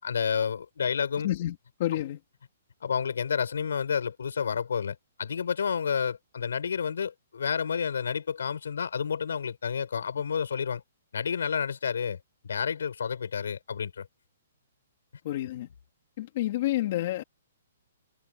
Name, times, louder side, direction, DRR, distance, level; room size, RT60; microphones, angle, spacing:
voice 1, 0.0-1.3 2.8-10.8 11.1-12.2 12.4-14.1, left 6 dB, 90° left, 5.0 m, -30 dB
voice 2, 1.2-2.2 15.2-15.7 16.2-17.2, left 14 dB, 35° left, 2.9 m, -29 dB
hypercardioid pair, 175°, 0 cm